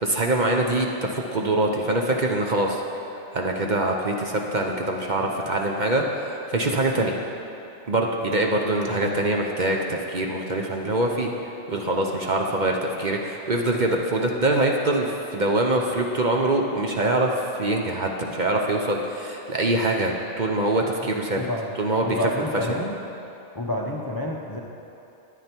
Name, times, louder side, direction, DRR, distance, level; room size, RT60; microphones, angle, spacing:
voice 1, 0.0-2.8 3.3-7.1 7.9-11.3 11.7-21.5 21.8-22.8, right 2 dB, 45° right, 1 dB, 0.8 m, -24 dB
voice 2, 21.4-21.7 22.0-23.0 23.5-24.6, left 1 dB, 25° left, 0 dB, 0.6 m, -29 dB
13.0 x 9.3 x 4.5 m, 2.8 s
omnidirectional pair, 1.3 m